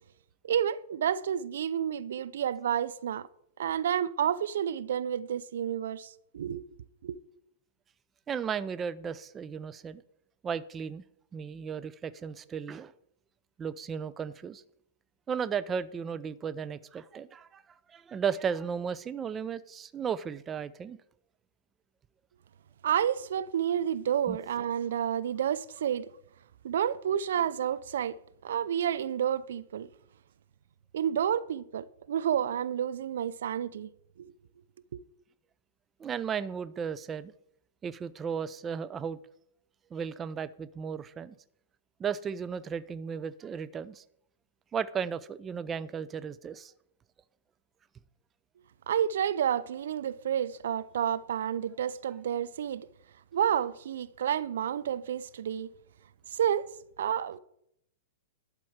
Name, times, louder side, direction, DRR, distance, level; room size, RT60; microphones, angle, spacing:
voice 1, 0.4-3.3 3.6-6.7 7.0-7.2 22.8-26.1 26.6-29.9 30.9-33.9 34.2-34.3 34.9-35.0 48.9-52.9 53.3-55.7 56.3-56.7 57.0-57.4, right 9 dB, 70° right, 0.5 m, -30 dB
voice 2, 8.3-10.0 10.4-11.0 11.3-12.9 13.6-14.6 15.3-17.6 17.9-21.0 24.3-24.4 36.0-37.3 37.8-39.2 39.9-41.3 42.0-44.0 44.7-46.7, right 7 dB, 20° right, 0.5 m, -35 dB
11.5 x 4.5 x 7.2 m
hypercardioid pair, 115°, 0 cm